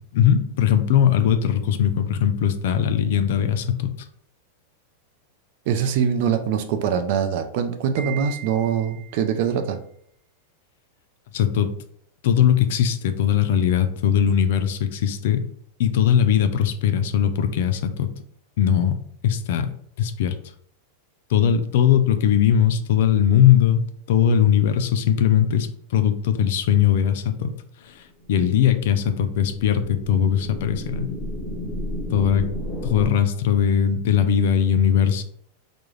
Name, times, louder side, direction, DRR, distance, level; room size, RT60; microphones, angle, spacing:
voice 1, 0.1-3.9 11.3-11.7 12.2-15.5 15.8-18.1 18.6-19.0 19.2-19.7 20.0-20.3 21.3-27.5 27.8-27.9 28.3-31.1 32.1-32.5 32.8-35.2, left 9 dB, 70° left, 9 dB, 0.3 m, -20 dB
voice 2, 5.7-9.8, right 7 dB, 60° right, 7 dB, 0.4 m, -23 dB
Wind chime, 8.0-9.3, right 9 dB, 80° right, 0.8 m, -39 dB
sound 1, 28.2-33.1, equal, ahead, 0.9 m, -33 dB
2.3 x 2.1 x 3.1 m, 0.64 s
hypercardioid pair, 115°, 0 cm